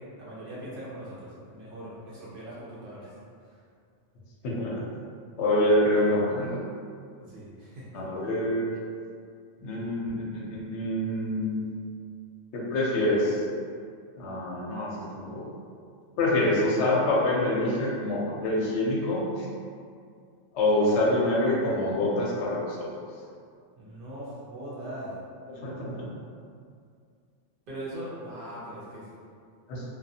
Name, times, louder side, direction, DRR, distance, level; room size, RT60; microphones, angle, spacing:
voice 1, 0.0-3.2 7.2-8.0 23.8-25.1 27.7-29.1, right 1 dB, 55° right, -8 dB, 0.7 m, -40 dB
voice 2, 4.4-4.8 5.4-6.6 7.9-8.7 9.6-11.6 12.5-13.4 14.2-15.5 16.2-19.5 20.5-22.9 25.5-26.1 29.7-29.8, left 1 dB, 75° left, -4 dB, 0.8 m, -26 dB
2.4 x 2.3 x 2.6 m, 2.3 s
omnidirectional pair, 1.2 m